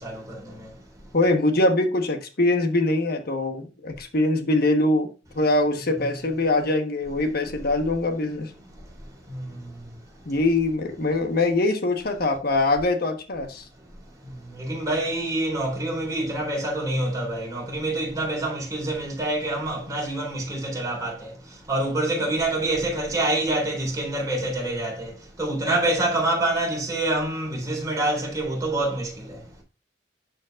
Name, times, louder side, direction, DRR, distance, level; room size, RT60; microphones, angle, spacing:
voice 1, 0.0-0.5 6.0-6.1 9.3-9.5 14.5-21.3 21.7-25.1 25.4-29.1, right 2 dB, 20° right, 3.8 m, -26 dB
voice 2, 1.1-5.1 5.3-8.5 10.3-13.6, left 2 dB, 55° left, 1.2 m, -23 dB
11.5 x 5.2 x 2.4 m
head